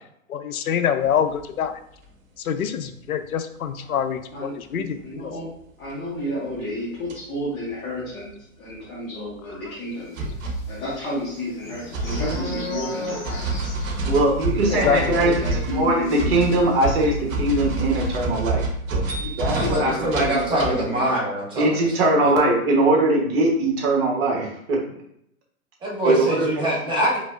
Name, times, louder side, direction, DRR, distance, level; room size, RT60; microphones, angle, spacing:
voice 1, 0.3-1.7 2.4-5.0 14.8-15.2, left 8 dB, 85° left, 9 dB, 0.5 m, -25 dB
sound 1, 1.4-1.5 5.8-5.9 6.6-6.8 7.1-7.2 7.4-7.5 7.7-7.8 8.0-8.1 8.3-8.4 8.8-8.9 9.5-9.6 10.1-10.9 11.9-20.7, right 2 dB, 65° right, 0.9 m, -28 dB
voice 2, 4.3-5.4 5.8-8.3 8.6-10.3 10.7-13.6 14.7-16.4 19.2-21.1, left 1 dB, 25° left, -8 dB, 1.3 m, -31 dB
sound 2, 10.4-17.1 17.4-17.6 17.8-18.1, left 1 dB, 10° left, 0.3 m, -37 dB
voice 3, 14.0-20.1 21.6-24.8 26.0-26.5, right 2 dB, 45° right, -1 dB, 1.3 m, -21 dB
voice 4, 19.5-21.7 22.0-22.4 25.8-27.2, right 1 dB, 10° right, -5 dB, 1.0 m, -24 dB
3.7 x 3.2 x 2.5 m, 0.72 s
figure-of-eight pair, 120°, 42 cm